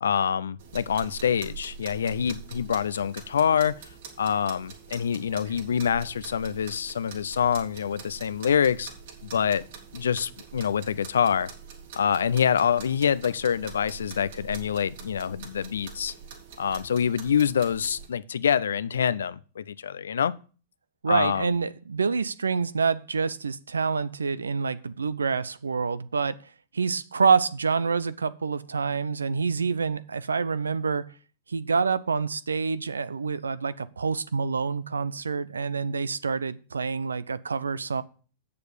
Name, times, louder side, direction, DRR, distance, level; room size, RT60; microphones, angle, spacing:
voice 1, 0.0-3.7 4.2-8.9 9.2-9.6 9.9-11.5 12.0-16.1 16.6-20.3 21.1-21.5, left 8 dB, 80° left, 0.5 m, -26 dB
sound 1, 0.6-18.1, right 6 dB, 70° right, 3.5 m, -44 dB
voice 2, 21.0-26.4 26.7-31.0 31.5-38.0, right 5 dB, 90° right, 0.6 m, -27 dB
7.9 x 6.8 x 6.9 m
hypercardioid pair, 105°, 0 cm